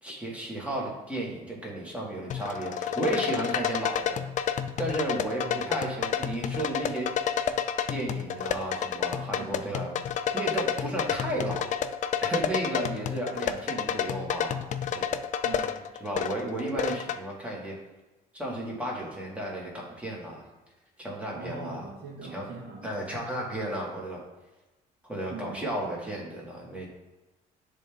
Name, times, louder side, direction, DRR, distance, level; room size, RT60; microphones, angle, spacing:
voice 1, 0.0-4.2 4.8-7.1 7.6-9.9 10.3-11.7 12.2-14.6 14.9-15.0 16.0-17.7 18.3-20.5 21.0-21.8 22.3-22.5 22.8-24.2 25.0-26.9, right 1 dB, 5° right, -3 dB, 1.7 m, -33 dB
sound 1, 2.3-17.2, left 8 dB, 50° left, 0.4 m, -30 dB
voice 2, 9.4-9.9 15.4-15.8 21.3-22.9 25.3-25.7, right 3 dB, 70° right, -2 dB, 1.6 m, -41 dB
7.9 x 3.5 x 3.5 m, 1.1 s
cardioid pair, 110°, 17 cm